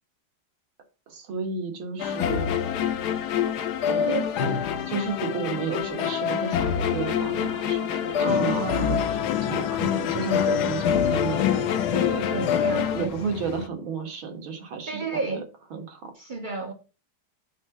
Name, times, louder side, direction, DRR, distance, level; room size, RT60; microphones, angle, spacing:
voice 1, 1.1-2.5 3.9-4.6 4.8-12.3 12.9-15.4 15.7-16.1, right 5 dB, 80° right, 2.4 m, -33 dB
sound 1, 2.0-13.1, left 8 dB, 65° left, 1.1 m, -26 dB
voice 2, 6.9-7.3 8.0-9.1 12.2-13.1 14.9-15.5 16.1-16.7, right 3 dB, 45° right, 0.6 m, -32 dB
sound 2, 8.3-13.7, left 13 dB, 80° left, 1.4 m, -30 dB
7.5 x 4.0 x 5.9 m
omnidirectional pair, 2.2 m